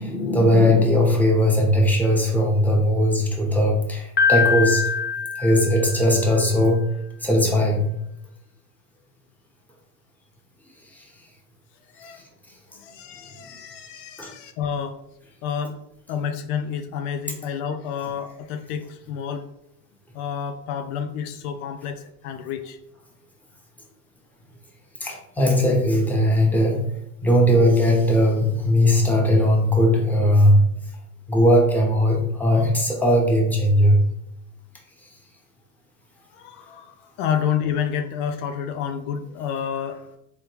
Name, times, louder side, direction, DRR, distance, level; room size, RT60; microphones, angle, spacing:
voice 1, 0.0-4.9 5.4-6.9 7.2-7.9 10.9-11.0 13.5-13.9 14.2-14.3 25.0-26.9 27.2-30.7 31.3-34.1, equal, 5° left, -2 dB, 0.9 m, -19 dB
Piano, 4.2-6.3, left 5 dB, 25° left, 0.5 m, -23 dB
voice 2, 12.7-15.0 15.4-15.8 16.1-19.5 20.1-22.8 32.5-32.6 36.3-40.1, left 8 dB, 80° left, 7 dB, 0.6 m, -29 dB
3.5 x 3.2 x 3.0 m, 0.80 s
supercardioid pair, 110°, 45 cm